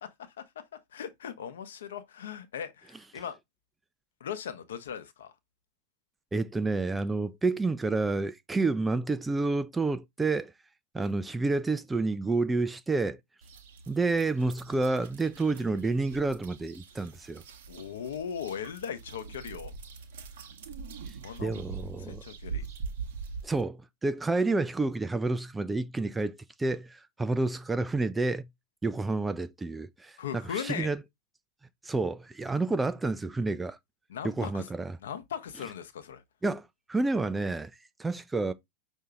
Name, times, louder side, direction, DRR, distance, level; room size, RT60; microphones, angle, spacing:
voice 1, 0.0-0.4 0.9-3.4 4.2-5.3 17.7-19.7 21.2-21.6 22.0-22.6 30.2-30.9 34.1-34.7 35.0-36.2, left 8 dB, 60° left, 0.8 m, -38 dB
voice 2, 6.3-10.5 10.9-13.2 13.9-17.4 21.1-22.2 23.4-28.5 28.8-31.0 31.8-33.8 34.2-35.0 36.4-37.7 38.0-38.5, right 3 dB, 10° right, 0.3 m, -29 dB
sound 1, 13.4-23.6, right 5 dB, 55° right, 0.8 m, -43 dB
5.5 x 2.7 x 3.6 m
figure-of-eight pair, 90°, 0 cm